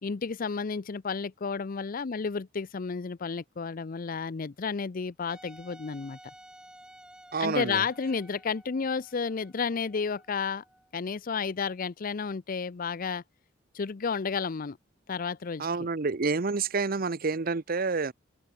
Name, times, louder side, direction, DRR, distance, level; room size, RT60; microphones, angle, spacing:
voice 1, 0.0-6.2 7.4-10.6 10.9-13.2 13.7-14.8 15.1-15.7, left 5 dB, 45° left, 0.5 m, -32 dB
Wind instrument woodwind instrument, 5.3-10.9, right 1 dB, 5° right, 1.3 m, -53 dB
voice 2, 7.3-7.8 15.6-18.1, right 4 dB, 50° right, 0.8 m, -28 dB
head